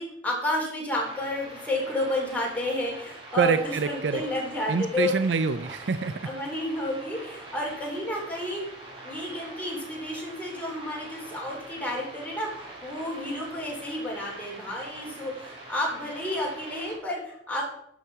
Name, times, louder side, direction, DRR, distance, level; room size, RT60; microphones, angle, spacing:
voice 1, 0.0-5.1 6.2-8.6 9.0-17.6, left 1 dB, 10° left, -2 dB, 3.0 m, -31 dB
sound 1, 0.9-16.9, right 1 dB, 30° right, 3.9 m, -44 dB
voice 2, 3.4-4.2 4.7-6.1, right 4 dB, 85° right, 11 dB, 0.5 m, -25 dB
11.0 x 7.2 x 4.6 m, 0.72 s
head